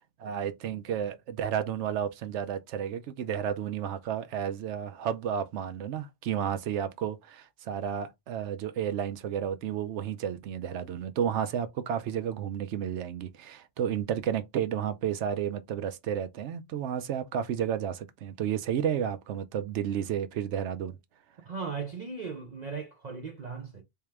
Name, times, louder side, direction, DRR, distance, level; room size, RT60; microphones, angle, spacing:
voice 1, 0.2-21.0, right 9 dB, 85° right, 0.9 m, -32 dB
voice 2, 21.4-23.8, right 5 dB, 45° right, 0.7 m, -37 dB
3.5 x 2.8 x 3.2 m
omnidirectional pair, 1.2 m